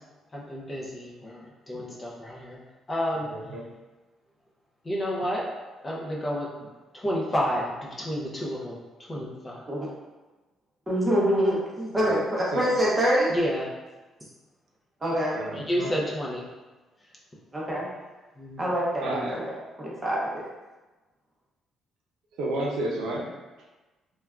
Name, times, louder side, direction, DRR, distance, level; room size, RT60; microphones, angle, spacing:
voice 1, 0.3-2.6 2.9-3.3 4.9-5.4 5.8-6.5 6.9-8.8 9.1-9.6 13.3-13.6 15.6-16.4 18.4-18.6, equal, 20° left, -4 dB, 0.5 m, -30 dB
voice 2, 3.2-3.7 11.9-12.2 12.5-12.7 15.3-15.9 19.0-19.4 22.4-23.3, right 1 dB, 75° right, -2 dB, 0.6 m, -32 dB
voice 3, 10.9-13.3 15.0-15.4 17.5-17.9 18.6-19.5 19.8-20.5, equal, 15° right, -6 dB, 0.7 m, -25 dB
3.2 x 2.2 x 2.3 m, 1.2 s
cardioid pair, 150°, 0 cm